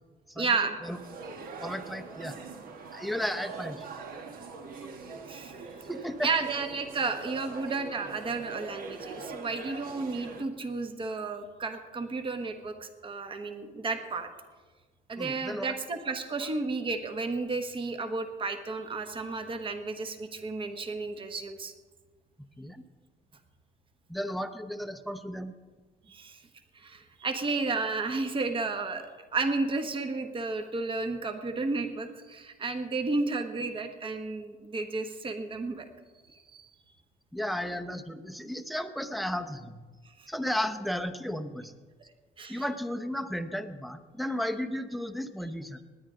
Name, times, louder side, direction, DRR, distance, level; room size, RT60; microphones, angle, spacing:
voice 1, 0.4-0.8 5.3-5.6 6.2-14.3 15.1-21.7 26.1-26.4 26.7-35.9 36.3-36.7 40.2-40.3 42.4-42.6, right 3 dB, 30° right, 7 dB, 1.2 m, -32 dB
sound 1, 0.8-10.4, right 4 dB, 60° right, 1.4 m, -43 dB
voice 2, 1.6-2.4 2.9-3.9 5.9-6.3 15.2-15.8 22.6-22.8 24.1-25.5 37.3-39.8 40.3-41.7 42.5-45.8, equal, ahead, 10 dB, 0.7 m, -34 dB
19.5 x 9.8 x 3.8 m, 1.4 s
cardioid pair, 110°, 17 cm